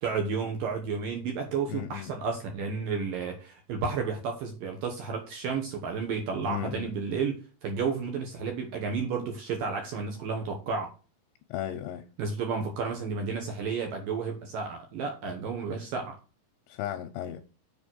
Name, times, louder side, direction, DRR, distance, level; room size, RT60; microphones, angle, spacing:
voice 1, 0.0-10.9 12.2-16.1, right 5 dB, 80° right, 2.0 m, -32 dB
voice 2, 1.7-2.1 6.4-6.9 11.5-12.0 16.7-17.4, left 12 dB, 85° left, 2.7 m, -35 dB
7.2 x 5.1 x 6.2 m
omnidirectional pair, 5.8 m